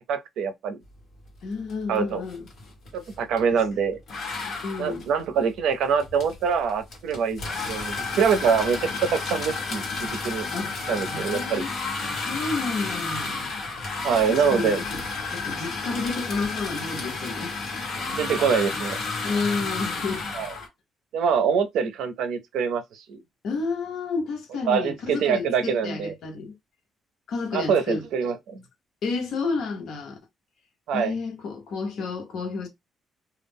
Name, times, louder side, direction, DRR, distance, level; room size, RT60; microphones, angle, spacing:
voice 1, 0.1-0.8 1.9-2.2 2.9-4.0 4.8-10.5 10.9-11.6 14.0-14.8 18.2-19.0 20.3-20.5 21.1-23.2 24.7-26.1 27.5-28.6 30.9-31.1, right 6 dB, 85° right, 0.5 m, -24 dB
voice 2, 1.4-2.4 3.5-3.6 4.6-5.0 10.5-10.7 11.1-11.7 12.3-13.4 14.3-15.0 15.3-17.6 19.2-20.2 23.4-26.5 27.3-28.0 29.0-30.2 30.9-32.7, left 4 dB, 65° left, 0.8 m, -30 dB
sound 1, 1.7-2.0 2.2-3.5 4.1-20.7, left 3 dB, 50° left, 1.1 m, -31 dB
2.2 x 2.0 x 3.5 m
cardioid pair, 155°, 0 cm